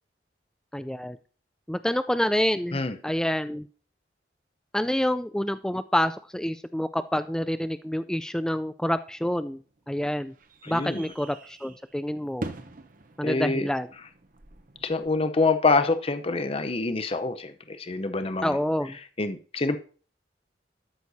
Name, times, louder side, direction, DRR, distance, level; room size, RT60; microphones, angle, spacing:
voice 1, 0.7-1.2 1.7-3.7 4.7-9.6 9.9-10.3 10.7-12.5 13.2-13.9 18.4-19.0, equal, 5° left, 11 dB, 0.4 m, -27 dB
sound 1, 9.1-15.1, right 2 dB, 50° right, 1.0 m, -44 dB
voice 2, 10.6-11.0 13.2-13.7 14.8-18.6 19.2-19.8, left 3 dB, 35° left, 10 dB, 0.7 m, -26 dB
13.0 x 6.5 x 4.1 m, 0.39 s
head